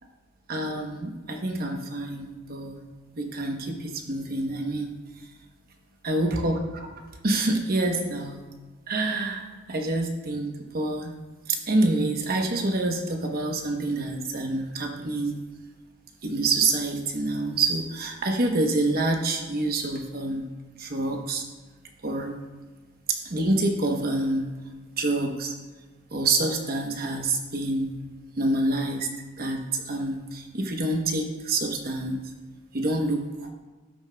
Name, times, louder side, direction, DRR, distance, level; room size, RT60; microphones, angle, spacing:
voice 1, 0.5-2.8 3.1-4.9 5.2-5.3 6.0-6.9 7.2-8.4 8.9-11.1 11.5-15.3 16.2-20.5 20.8-21.5 22.0-22.4 23.1-24.5 25.0-25.5 26.1-27.9 28.4-29.1 29.4-32.2 32.7-33.5, right 2 dB, 45° right, 3 dB, 0.9 m, -27 dB
12.5 x 6.9 x 2.3 m, 1.3 s
head